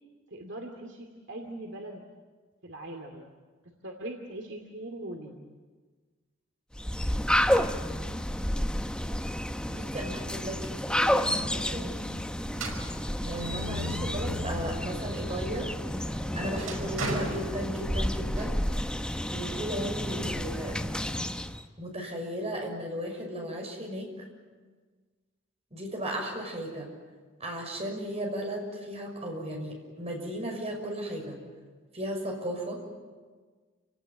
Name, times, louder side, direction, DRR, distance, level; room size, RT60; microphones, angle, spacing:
voice 1, 0.3-2.0 2.6-3.3 3.6-5.4 20.0-20.4, right 1 dB, 60° right, 2 dB, 2.5 m, -41 dB
sound 1, 6.7-21.6, equal, 5° left, 0.9 m, -30 dB
voice 2, 7.8-8.2 9.8-12.0 13.2-15.7 16.3-18.6 19.3-20.8 21.8-24.1 25.7-26.9 27.4-31.4 31.9-32.8, equal, 30° right, 1 dB, 6.1 m, -35 dB
sound 2, 12.5-14.9 15.4-18.2, right 1 dB, 90° right, 5.3 m, -37 dB
29.0 x 18.0 x 9.8 m, 1.4 s
head